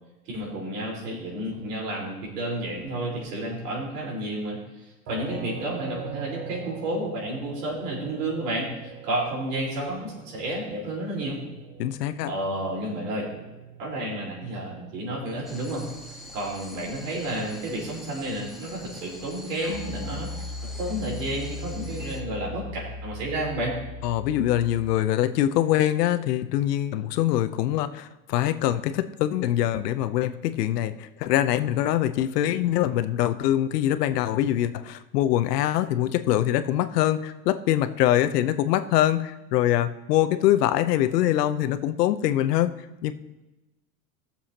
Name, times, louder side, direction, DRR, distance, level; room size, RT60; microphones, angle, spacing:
voice 1, 0.3-4.6 5.1-11.4 12.2-13.3 13.8-15.9 16.3-20.3 20.6-23.7, right 1 dB, 85° right, -3 dB, 4.4 m, -31 dB
sound 1, 5.1-18.1, right 7 dB, 40° right, 1.3 m, -44 dB
voice 2, 11.8-12.3 24.0-42.7 43.0-43.1, left 12 dB, 85° left, 11 dB, 0.8 m, -24 dB
sound 2, 15.4-22.2, left 1 dB, ahead, 0.9 m, -45 dB
Piano, 19.7-24.8, left 2 dB, 20° left, 2.5 m, -37 dB
19.5 x 7.1 x 2.9 m, 1.1 s
supercardioid pair, 135°, 46 cm